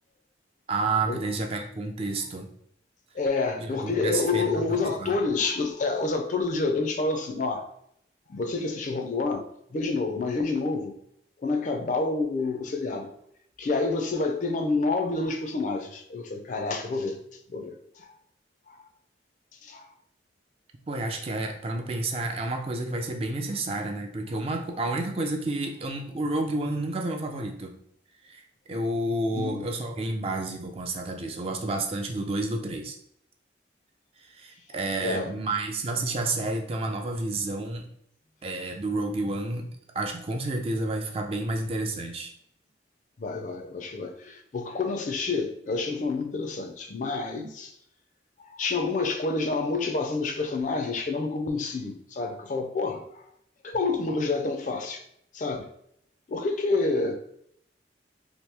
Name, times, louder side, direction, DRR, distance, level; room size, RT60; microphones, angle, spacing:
voice 1, 0.7-2.5 3.6-5.2 20.9-27.8 28.2-28.4 28.7-33.0 34.2-37.9 38.4-39.7 39.9-42.3, right 2 dB, 30° right, 3 dB, 0.3 m, -30 dB
voice 2, 3.1-7.6 8.3-10.9 11.4-13.1 13.6-17.2 17.5-18.1 18.7-18.8 19.6-19.8 29.3-29.6 34.7-35.3 43.2-47.7 48.4-53.3 53.6-55.0 55.3-55.7 56.3-57.2, left 3 dB, 40° left, 5 dB, 0.4 m, -28 dB
2.9 x 2.6 x 3.3 m, 0.71 s
head